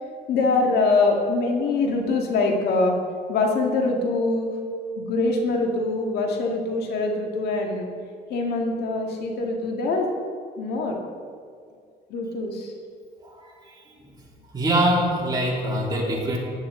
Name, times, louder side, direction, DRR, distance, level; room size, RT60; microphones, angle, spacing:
voice 1, 0.3-3.0 3.3-4.5 5.0-7.9 8.3-10.1 10.6-11.0 12.1-12.7, left 3 dB, 75° left, 2 dB, 1.9 m, -23 dB
voice 2, 13.2-13.8 14.5-16.4, right 1 dB, 25° right, -4 dB, 3.5 m, -24 dB
15.5 x 10.5 x 3.8 m, 2.2 s
cardioid pair, 110°, 17 cm